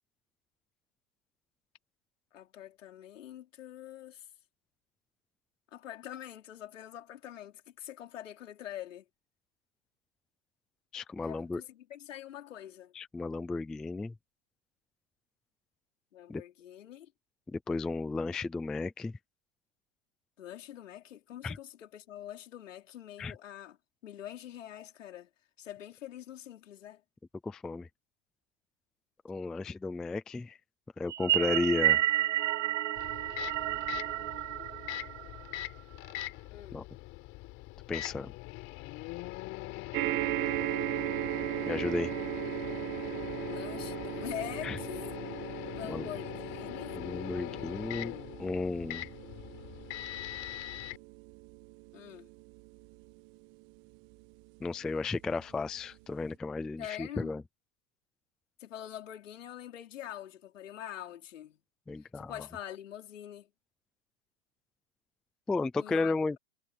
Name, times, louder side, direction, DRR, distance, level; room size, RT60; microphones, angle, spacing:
voice 1, 2.3-4.3 5.7-9.0 11.2-12.9 16.1-17.1 20.4-23.8 24.0-25.3 25.6-27.0 36.5-36.8 43.4-45.2 45.7-47.0 51.9-52.3 56.8-57.3 58.6-61.6 62.1-63.5 65.8-66.4, left 11 dB, 70° left, 4.9 m, -45 dB
voice 2, 10.9-11.6 13.0-14.1 16.3-16.4 17.5-19.1 21.4-21.6 23.2-23.3 27.4-27.9 29.2-30.6 31.0-32.0 36.7-36.8 37.9-38.3 41.7-42.1 44.6-44.8 45.9-46.0 46.9-48.1 48.4-49.1 54.6-57.4 61.9-62.3 65.5-66.4, left 3 dB, ahead, 0.3 m, -33 dB
sound 1, 31.1-35.6, right 13 dB, 65° right, 1.0 m, -30 dB
Microwave oven, 33.0-51.0, left 17 dB, 30° left, 4.1 m, -41 dB
sound 2, 39.9-54.5 55.2-55.3 55.6-55.7, right 22 dB, 30° right, 1.5 m, -38 dB
hypercardioid pair, 145°, 39 cm